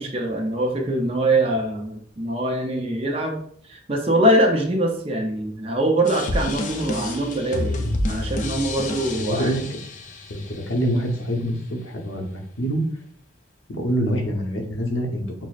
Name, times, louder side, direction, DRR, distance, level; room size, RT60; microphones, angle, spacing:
voice 1, 0.0-3.4 3.7-9.5, right 1 dB, 30° right, 2 dB, 0.5 m, -23 dB
sound 1, 6.0-11.0, left 2 dB, 40° left, 0.4 m, -29 dB
voice 2, 9.2-9.7 10.3-12.8 13.7-15.2, equal, 85° left, 1 dB, 0.8 m, -25 dB
6.0 x 2.0 x 2.4 m, 0.63 s
head